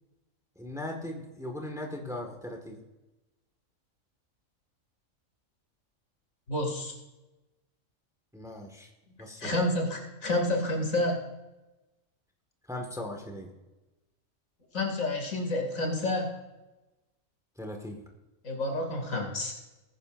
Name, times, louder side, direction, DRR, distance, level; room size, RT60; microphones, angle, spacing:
voice 1, 0.5-2.8 8.3-8.9 9.2-9.5 12.7-13.5 17.6-18.0, left 1 dB, ahead, 3 dB, 1.6 m, -38 dB
voice 2, 6.5-6.9 9.4-11.2 14.7-16.3 18.4-19.5, left 1 dB, 80° left, 1 dB, 3.1 m, -29 dB
20.5 x 10.0 x 2.6 m, 1.1 s
omnidirectional pair, 1.4 m